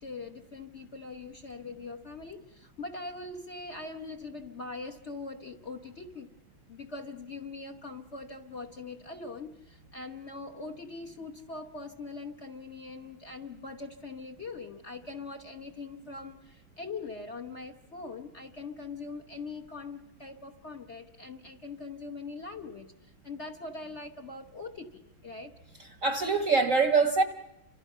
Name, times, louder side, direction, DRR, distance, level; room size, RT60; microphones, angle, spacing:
voice 1, 0.0-6.3 6.7-25.5, left 3 dB, 40° left, 6 dB, 1.2 m, -42 dB
voice 2, 25.8-27.2, right 4 dB, 50° right, 8 dB, 1.1 m, -24 dB
30.0 x 26.5 x 5.6 m, 0.90 s
omnidirectional pair, 2.3 m